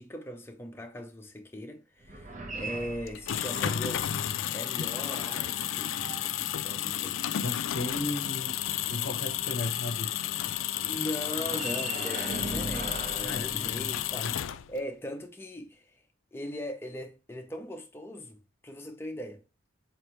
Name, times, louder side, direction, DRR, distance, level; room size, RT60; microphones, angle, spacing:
voice 1, 0.0-6.1 6.6-7.3 10.9-14.3 14.7-15.9 16.3-19.4, equal, 10° left, 0.6 m, -39 dB
sound 1, 2.0-4.0 4.7-7.1 11.2-14.3, right 2 dB, 35° right, 0.7 m, -40 dB
sound 2, 3.1-14.9, left 11 dB, 70° left, 0.3 m, -32 dB
voice 2, 7.4-8.6 8.9-10.1 13.2-13.9 14.1-14.3, left 2 dB, 55° left, 0.7 m, -35 dB
4.4 x 3.2 x 3.0 m
head